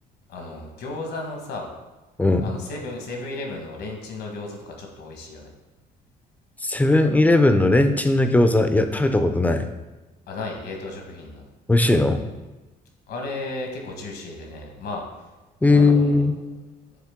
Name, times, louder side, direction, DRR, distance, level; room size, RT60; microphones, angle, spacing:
voice 1, 0.3-1.7 2.4-5.5 10.3-11.4 13.1-15.0 15.7-16.3, left 2 dB, 70° left, 1 dB, 1.4 m, -34 dB
voice 2, 2.2-2.5 6.6-9.7 11.7-12.3 15.6-16.3, left 2 dB, 10° left, 8 dB, 0.5 m, -18 dB
7.5 x 3.5 x 3.6 m, 1.1 s
cardioid pair, 110°, 17 cm